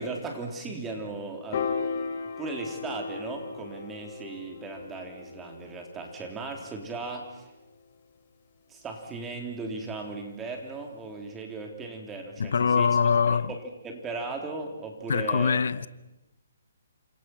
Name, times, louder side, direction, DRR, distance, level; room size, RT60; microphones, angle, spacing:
voice 1, 0.0-2.1 2.4-7.5 8.7-12.9 13.3-15.9, right 3 dB, 10° right, 3.6 m, -37 dB
Piano, 1.5-7.9, left 5 dB, 40° left, 3.5 m, -37 dB
voice 2, 12.4-13.5 15.1-15.9, left 6 dB, 70° left, 1.0 m, -23 dB
28.5 x 26.5 x 6.1 m
hypercardioid pair, 160°, 0 cm